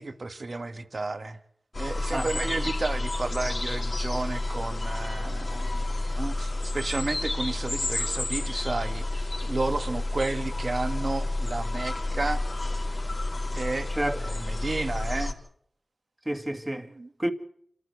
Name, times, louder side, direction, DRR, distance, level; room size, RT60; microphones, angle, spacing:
voice 1, 0.0-1.4 1.8-12.4 13.6-13.9 14.2-15.4 16.9-17.1, right 3 dB, 55° right, 1.8 m, -32 dB
sound 1, 1.7-15.3, left 2 dB, 50° left, 3.2 m, -30 dB
voice 2, 2.1-2.5 13.9-14.2 16.3-16.9 17.2-17.3, right 1 dB, 15° right, 2.1 m, -29 dB
27.0 x 14.0 x 8.1 m
wide cardioid pair, 55°, 0 cm